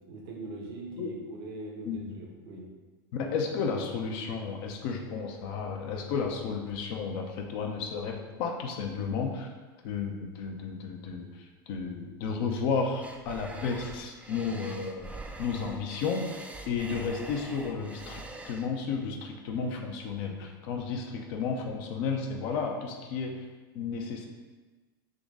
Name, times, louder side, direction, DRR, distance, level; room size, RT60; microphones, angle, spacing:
voice 1, 0.1-2.7, right 2 dB, 70° right, -2 dB, 1.1 m, -41 dB
voice 2, 3.1-9.5 9.8-11.3 11.7-15.1 15.4-18.2 18.5-23.4 23.7-24.3, left 5 dB, 60° left, 2 dB, 0.7 m, -32 dB
sound 1, 13.0-18.7, right 2 dB, 10° right, 0.4 m, -44 dB
3.8 x 3.0 x 3.7 m, 1.3 s
hypercardioid pair, 100°, 13 cm